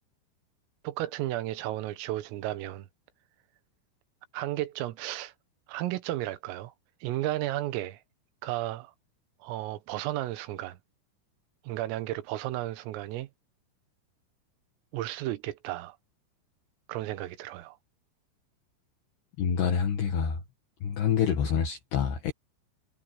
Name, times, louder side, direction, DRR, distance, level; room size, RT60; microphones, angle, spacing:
voice 1, 0.8-2.9 4.3-5.3 5.7-6.7 7.0-8.0 8.4-8.9 9.4-10.8 11.7-13.3 14.9-16.0 16.9-17.8, right 15 dB, 85° right, 3.8 m, -33 dB
voice 2, 19.4-20.4 20.8-22.3, left 7 dB, 60° left, 3.5 m, -27 dB
omnidirectional pair, 5.8 m